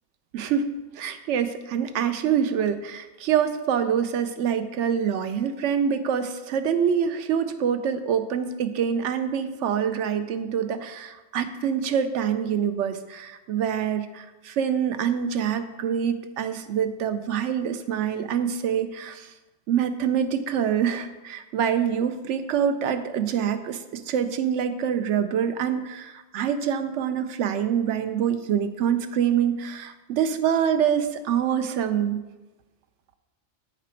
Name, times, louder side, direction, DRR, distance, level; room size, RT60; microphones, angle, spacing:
voice 1, 0.3-19.3 19.7-32.2, right 8 dB, 85° right, 10 dB, 0.9 m, -25 dB
7.6 x 5.0 x 4.4 m, 1.1 s
omnidirectional pair, 1.2 m